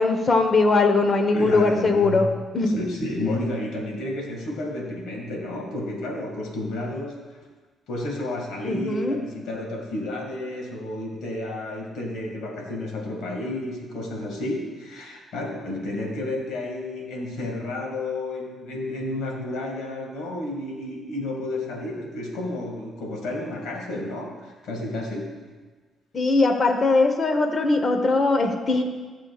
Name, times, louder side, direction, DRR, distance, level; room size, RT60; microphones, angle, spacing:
voice 1, 0.0-2.3 2.5-2.8 8.7-9.2 26.1-28.8, left 3 dB, 40° left, 6 dB, 1.1 m, -20 dB
voice 2, 0.9-2.2 2.6-7.4 7.9-25.5, left 1 dB, 85° left, 0 dB, 2.1 m, -31 dB
15.0 x 7.1 x 2.4 m, 1.4 s
cardioid pair, 90°, 0 cm